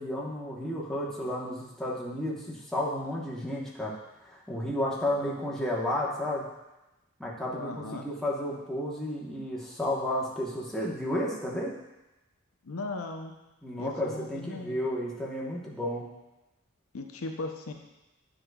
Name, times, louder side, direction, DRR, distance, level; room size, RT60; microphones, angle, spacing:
voice 1, 0.0-4.0 4.3-6.5 7.2-11.7 13.6-16.0, left 1 dB, ahead, -6 dB, 1.0 m, -32 dB
voice 2, 2.8-3.2 5.1-5.3 7.5-8.0 12.6-13.3 13.8-14.8 16.9-17.7, left 3 dB, 90° left, 3 dB, 0.7 m, -38 dB
8.8 x 4.9 x 2.3 m, 0.99 s
head